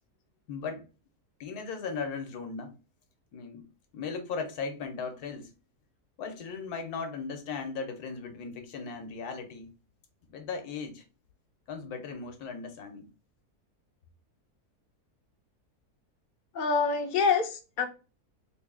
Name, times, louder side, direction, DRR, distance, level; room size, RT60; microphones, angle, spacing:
voice 1, 0.5-0.8 1.4-2.7 3.3-3.6 3.9-5.5 6.2-9.7 10.3-11.0 11.7-13.1, left 5 dB, 75° left, 1.3 m, -37 dB
voice 2, 16.5-17.9, left 5 dB, 50° left, 0.6 m, -26 dB
3.6 x 2.3 x 3.5 m
omnidirectional pair, 1.7 m